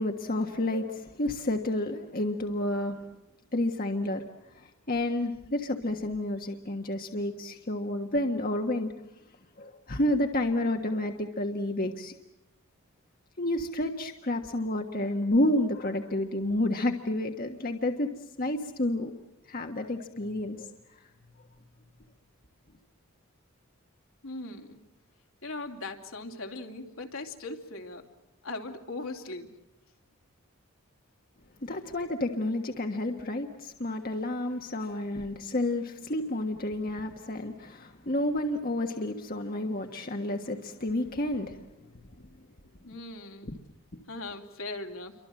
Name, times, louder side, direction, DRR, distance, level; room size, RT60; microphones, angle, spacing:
voice 1, 0.0-3.0 3.5-8.9 9.6-12.1 13.4-18.1 18.4-19.1 19.5-20.7 31.6-41.6 43.4-43.5, left 1 dB, 45° left, 4 dB, 1.5 m, -30 dB
voice 2, 24.2-24.8 25.4-28.0 28.4-29.5 42.8-43.5 44.1-45.1, left 2 dB, 70° left, 3 dB, 2.9 m, -39 dB
29.0 x 24.5 x 7.7 m, 0.93 s
head